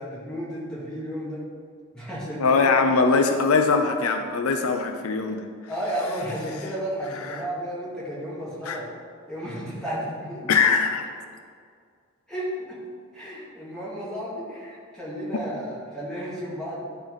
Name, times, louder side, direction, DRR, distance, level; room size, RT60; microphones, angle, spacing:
voice 1, 0.0-1.4 1.9-2.7 5.1-5.3 5.7-8.9 9.3-10.5 12.3-12.8 13.1-16.8, equal, 5° left, -8 dB, 2.0 m, -33 dB
voice 2, 2.4-5.4 8.7-8.8 10.5-11.1, left 4 dB, 80° left, 6 dB, 0.5 m, -21 dB
10.5 x 3.9 x 4.8 m, 2.1 s
head